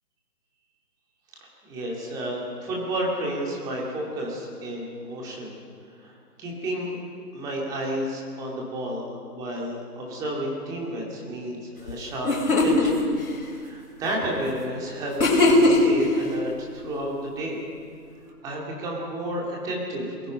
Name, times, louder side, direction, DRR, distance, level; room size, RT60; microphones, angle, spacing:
voice 1, 1.6-5.5 6.0-7.0 7.3-12.3 12.6-13.1 13.6-17.6 18.4-20.3, right 1 dB, 5° right, -2 dB, 2.3 m, -31 dB
sound 1, 11.9-12.0 12.2-12.9 15.2-16.0, left 2 dB, 60° left, 7.0 m, -19 dB
28.0 x 21.0 x 5.4 m, 2.2 s
figure-of-eight pair, 160°, 49 cm